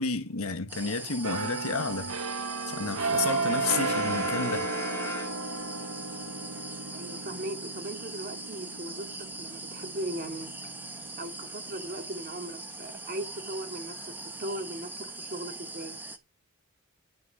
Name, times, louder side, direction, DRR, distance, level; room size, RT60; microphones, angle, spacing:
voice 1, 0.0-2.2 2.7-4.7, left 4 dB, 75° left, 1.4 m, -31 dB
sound 1, 0.7-16.2, right 2 dB, 10° right, 1.2 m, -41 dB
sound 2, 1.2-12.8 13.2-13.5, right 3 dB, 80° right, 1.1 m, -34 dB
Brass instrument, 3.3-5.9, left 1 dB, 15° left, 3.1 m, -38 dB
voice 2, 6.9-10.7 11.2-16.0, right 1 dB, 45° right, 2.4 m, -38 dB
11.5 x 6.3 x 6.8 m
head